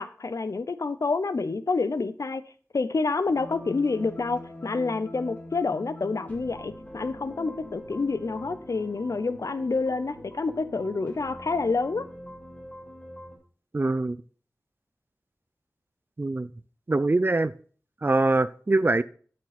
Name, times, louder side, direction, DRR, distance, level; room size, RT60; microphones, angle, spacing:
voice 1, 0.0-2.4 2.7-12.1, left 3 dB, 65° left, 13 dB, 0.6 m, -28 dB
sound 1, 3.3-13.4, equal, 30° left, 2.9 m, -43 dB
voice 2, 13.7-14.2 16.2-16.5 16.9-17.5 18.0-19.0, right 2 dB, 35° right, 17 dB, 0.4 m, -23 dB
8.3 x 6.4 x 4.1 m, 0.43 s
wide cardioid pair, 45°, 6 cm